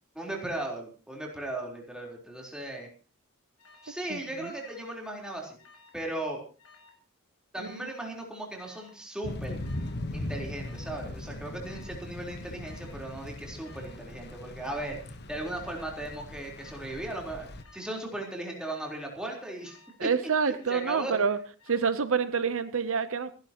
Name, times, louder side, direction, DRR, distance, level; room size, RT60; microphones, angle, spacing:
voice 1, 0.1-2.9 3.8-5.6 5.9-6.4 7.5-9.6 10.1-17.5 17.7-20.1 20.7-21.1, right 1 dB, 5° right, -1 dB, 4.0 m, -37 dB
Alarm, 3.6-4.0 4.6-5.1 5.3-6.0 6.6-7.0 7.6-8.0 8.6-9.0 9.6-10.0 10.6-11.0 11.6-12.0 12.6-13.0 13.6-14.0 14.6-15.0 15.6-16.0 16.6-17.0 17.6-18.0 18.6-19.0 19.6-20.1 20.6-21.1 21.6-22.1, left 4 dB, 80° left, 7.2 m, -57 dB
voice 2, 4.1-4.5 7.6-7.9 20.0-21.4 21.7-23.3, right 5 dB, 65° right, 12 dB, 0.8 m, -28 dB
Thunder / Rain, 9.2-17.6, left 1 dB, 50° left, 1.3 m, -39 dB
29.0 x 11.5 x 3.0 m, 0.37 s
head